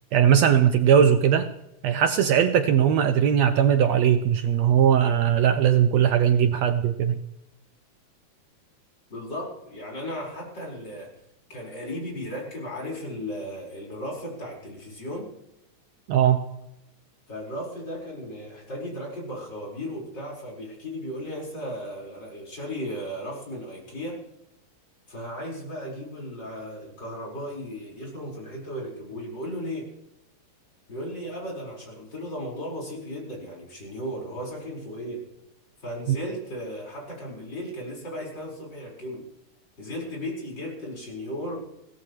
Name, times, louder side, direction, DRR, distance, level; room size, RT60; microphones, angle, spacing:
voice 1, 0.1-1.5 1.8-7.2 16.1-16.4 36.1-36.2, right 9 dB, 70° right, 8 dB, 1.8 m, -19 dB
voice 2, 9.1-11.1 11.5-15.3 17.3-24.2 25.1-29.9 30.9-35.2 35.8-39.3 39.8-41.6, equal, 35° left, -3 dB, 5.6 m, -35 dB
21.5 x 17.0 x 3.2 m, 0.84 s
omnidirectional pair, 3.3 m